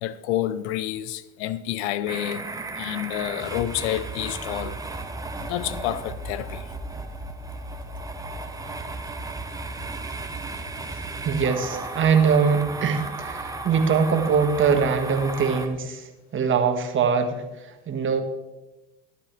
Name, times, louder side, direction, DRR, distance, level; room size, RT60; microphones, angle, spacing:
voice 1, 0.0-2.4 2.8-4.8 5.4-6.7, left 12 dB, 75° left, 0.7 m, -29 dB
sound 1, 2.1-15.7, right 2 dB, 10° right, 1.0 m, -34 dB
voice 2, 10.9-18.2, right 6 dB, 35° right, 1.6 m, -23 dB
13.0 x 11.5 x 3.4 m
hypercardioid pair, 90°, 34 cm